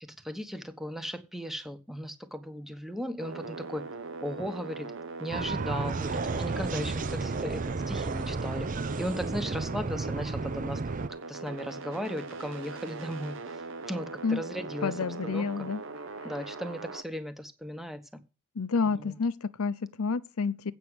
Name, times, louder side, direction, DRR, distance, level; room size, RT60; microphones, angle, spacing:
voice 1, 0.2-3.8 4.2-4.9 5.2-8.7 9.0-10.8 11.3-13.4 13.9-14.9 15.2-15.7 16.2-18.2 18.8-19.2, equal, ahead, 1.1 m, -36 dB
sound 1, 3.2-17.0, right 3 dB, 60° right, 1.0 m, -41 dB
sound 2, 5.3-11.1, right 3 dB, 40° right, 0.5 m, -32 dB
voice 2, 14.8-15.8 18.6-20.7, left 4 dB, 75° left, 0.6 m, -29 dB
8.5 x 6.0 x 7.9 m
head